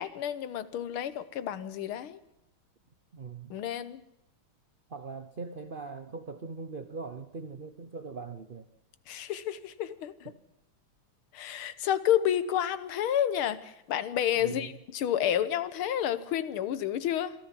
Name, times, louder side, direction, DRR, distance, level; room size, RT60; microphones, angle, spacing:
voice 1, 0.0-2.2 3.5-4.0 9.1-10.3 11.3-17.3, left 10 dB, 75° left, 14 dB, 1.9 m, -30 dB
voice 2, 3.1-3.6 4.9-8.7 10.2-10.4 14.3-14.7, right 4 dB, 65° right, 10 dB, 0.5 m, -41 dB
26.0 x 13.5 x 7.5 m, 0.86 s
omnidirectional pair, 2.4 m